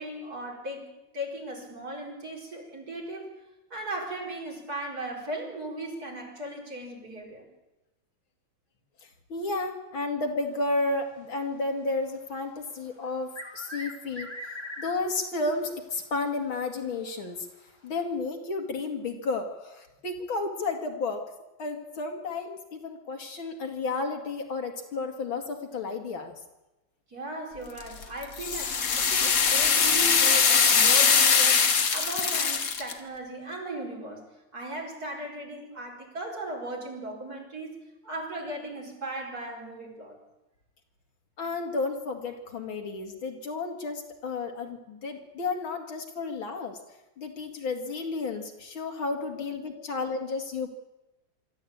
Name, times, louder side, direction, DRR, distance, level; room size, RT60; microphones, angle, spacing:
voice 1, 0.0-3.4 3.7-7.5 27.1-37.8 38.0-40.2 49.7-49.8, right 1 dB, 45° right, -1 dB, 5.1 m, -37 dB
voice 2, 9.3-14.3 14.8-17.5 17.8-21.2 21.6-26.4 41.4-46.8 47.2-50.7, left 3 dB, 70° left, 3 dB, 3.0 m, -32 dB
sound 1, 13.0-15.3 15.6-15.7 16.6-16.7 17.9-18.0, left 1 dB, 15° left, 2.2 m, -40 dB
sound 2, 27.8-32.9, left 6 dB, 45° left, 1.7 m, -22 dB
24.5 x 13.0 x 8.7 m, 1.0 s
omnidirectional pair, 2.3 m